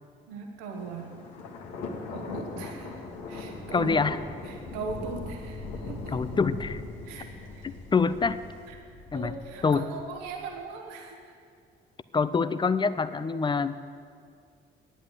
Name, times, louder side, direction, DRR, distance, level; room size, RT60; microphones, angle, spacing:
voice 1, 0.3-1.2 2.1-3.0 3.3-3.9 4.4-6.1 7.0-7.3 7.5-7.6 8.7-8.8 9.1-11.4, right 4 dB, 65° right, 2 dB, 1.5 m, -39 dB
Thunder, 0.7-10.6, left 3 dB, 65° left, 1.6 m, -40 dB
voice 2, 3.7-4.2 6.1-6.8 7.9-8.4 9.1-9.3 9.6-9.9 12.1-13.8, left 5 dB, 15° left, 14 dB, 0.6 m, -25 dB
12.0 x 10.5 x 7.6 m, 2.2 s
figure-of-eight pair, 45°, 29 cm